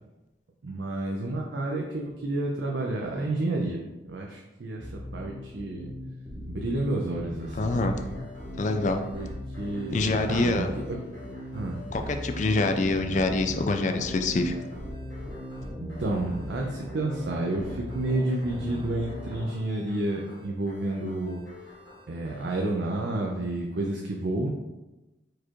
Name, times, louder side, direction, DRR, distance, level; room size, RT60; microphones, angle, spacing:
voice 1, 0.6-5.9 6.5-8.0 9.1-11.1 11.5-11.8 15.8-21.4 22.1-24.5, right 2 dB, 65° right, 0 dB, 0.5 m, -30 dB
sound 1, 4.8-19.5, left 1 dB, 15° right, 0.8 m, -39 dB
sound 2, 7.4-22.7, left 1 dB, 85° left, 1.4 m, -46 dB
voice 2, 7.6-7.9 8.6-9.0 9.9-10.7 11.9-14.5, left 2 dB, 40° left, 6 dB, 0.4 m, -25 dB
4.7 x 2.5 x 4.4 m, 1.0 s
head